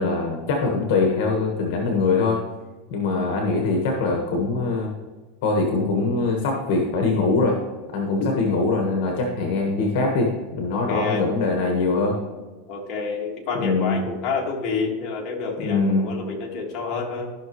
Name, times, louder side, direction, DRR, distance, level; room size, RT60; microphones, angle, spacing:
voice 1, 0.0-2.4 2.9-4.9 5.4-7.6 7.9-12.2 13.5-14.0 15.6-16.2, left 3 dB, 60° left, 2 dB, 1.4 m, -23 dB
voice 2, 8.2-8.6 10.7-11.3 12.7-17.4, left 4 dB, 35° left, -1 dB, 1.9 m, -28 dB
13.5 x 6.0 x 3.1 m, 1.3 s
supercardioid pair, 145°, 0 cm